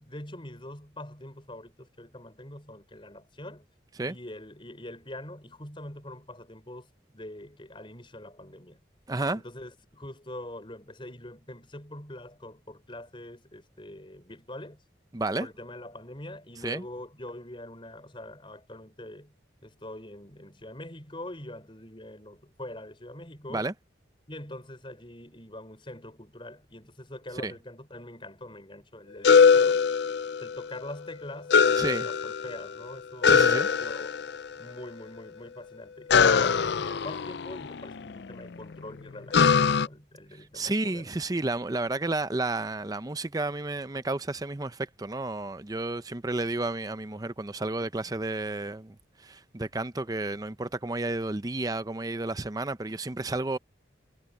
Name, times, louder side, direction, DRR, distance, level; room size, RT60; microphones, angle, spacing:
voice 1, 0.0-3.7 4.1-8.8 9.3-14.8 15.4-19.3 19.6-23.7 24.3-29.8 30.4-34.2 34.6-41.1, left 1 dB, 25° left, 5.7 m, -44 dB
voice 2, 9.1-9.4 15.1-15.5 16.6-16.8 23.5-23.7 27.4-27.5 31.8-32.1 33.2-33.7 40.3-53.6, right 2 dB, 20° right, 0.6 m, -31 dB
sound 1, 29.2-30.7 31.5-32.7 33.2-34.5 36.1-38.2 39.3-39.9, left 6 dB, 65° left, 0.5 m, -22 dB
head